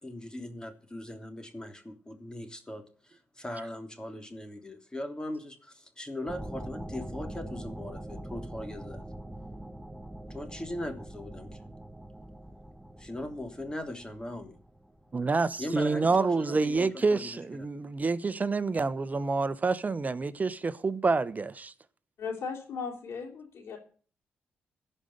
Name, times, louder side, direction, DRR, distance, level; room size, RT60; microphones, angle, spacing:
voice 1, 0.0-9.0 10.3-11.6 13.0-14.5 15.6-17.3, left 1 dB, 20° left, 3.2 m, -39 dB
sound 1, 6.3-15.4, right 1 dB, 10° right, 1.2 m, -43 dB
voice 2, 15.1-21.7, right 4 dB, 35° right, 1.1 m, -28 dB
voice 3, 22.2-23.8, left 5 dB, 70° left, 3.7 m, -37 dB
14.5 x 5.6 x 9.4 m
supercardioid pair, 50°, 4 cm